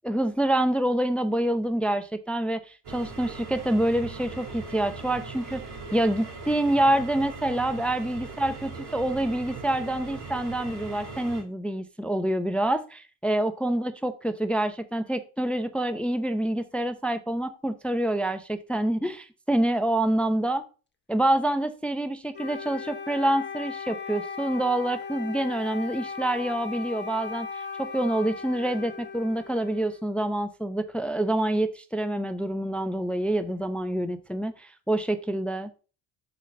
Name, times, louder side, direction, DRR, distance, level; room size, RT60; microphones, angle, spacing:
voice 1, 0.0-5.6 5.9-20.6 21.1-35.7, right 1 dB, ahead, 0.6 m, -27 dB
sound 1, 2.8-11.4, right 4 dB, 50° right, 2.8 m, -40 dB
Wind instrument woodwind instrument, 22.3-30.1, left 5 dB, 20° left, 1.0 m, -37 dB
6.2 x 4.2 x 5.1 m
supercardioid pair, 65°, 49 cm